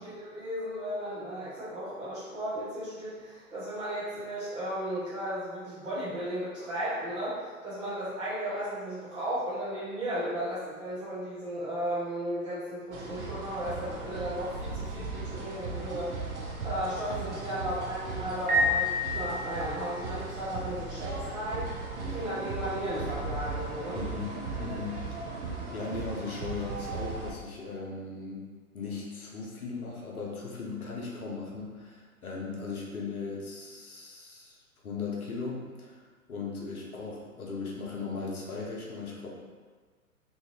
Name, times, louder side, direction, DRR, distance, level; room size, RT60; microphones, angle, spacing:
voice 1, 0.0-16.1 16.6-24.0, equal, 10° right, -12 dB, 0.5 m, -35 dB
sound 1, 12.9-27.3, right 3 dB, 50° right, 0.6 m, -37 dB
Piano, 18.5-19.9, left 2 dB, 90° right, 0.8 m, -28 dB
voice 2, 23.9-25.1 25.7-28.5 28.7-34.6 34.8-39.3, left 4 dB, 75° left, -3 dB, 0.9 m, -38 dB
3.0 x 2.4 x 2.8 m, 1.5 s
figure-of-eight pair, 115°, 44 cm